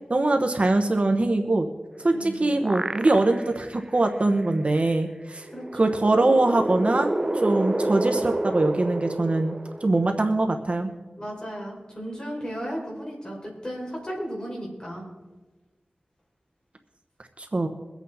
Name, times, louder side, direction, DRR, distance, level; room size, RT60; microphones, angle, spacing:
voice 1, 0.1-1.7 2.0-5.4 5.7-9.5 9.8-10.9 17.4-17.7, right 2 dB, 45° right, 5 dB, 1.1 m, -23 dB
sound 1, 2.0-3.6 4.1-4.2 5.4-10.2, right 1 dB, 25° right, 0.6 m, -29 dB
voice 2, 2.1-2.4 5.5-5.9 11.2-15.0, equal, 30° left, -2 dB, 4.7 m, -35 dB
22.5 x 8.2 x 4.2 m, 1.2 s
wide cardioid pair, 75°, 3 cm